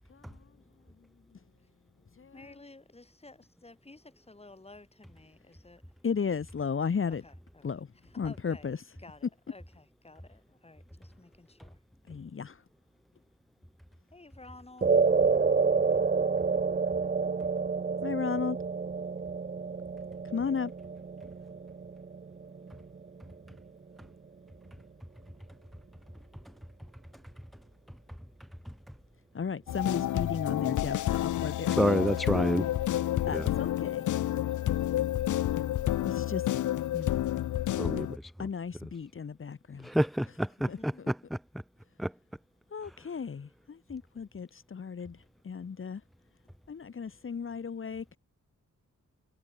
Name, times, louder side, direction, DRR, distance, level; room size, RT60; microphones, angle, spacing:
voice 1, 2.3-5.8 7.1-8.7 9.0-11.8 14.1-15.0 40.6-41.1, left 2 dB, 20° left, 6.4 m, -53 dB
voice 2, 6.0-7.2 7.6-7.8 8.2-8.8 12.1-12.5 18.0-18.6 20.3-20.7 29.3-31.7 33.3-34.0 36.0-36.4 36.9-37.2 38.4-39.8 40.7-40.8 42.7-43.5 43.9-45.1 45.5-46.0 46.7-48.2, left 6 dB, 40° left, 1.7 m, -34 dB
sound 1, 14.8-23.3, right 5 dB, 30° right, 0.9 m, -29 dB
sound 2, 29.7-38.2, left 13 dB, 75° left, 0.5 m, -29 dB
voice 3, 31.7-32.7 33.3-33.4 37.8-38.3 39.8-40.9 42.0-42.1, equal, ahead, 0.7 m, -28 dB
wide cardioid pair, 150°, 31 cm